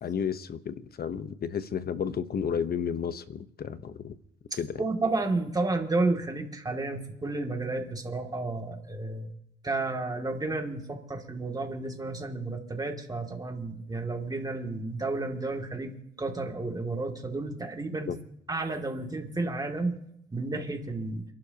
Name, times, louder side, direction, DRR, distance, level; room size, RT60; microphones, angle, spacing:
voice 1, 0.0-4.1 4.5-4.8 18.1-18.2, left 7 dB, 50° left, 1.0 m, -32 dB
voice 2, 4.5-9.3 9.6-18.1 18.5-20.0 20.3-21.3, right 2 dB, 20° right, 2.5 m, -31 dB
28.5 x 12.0 x 2.9 m
cardioid pair, 90°, 20 cm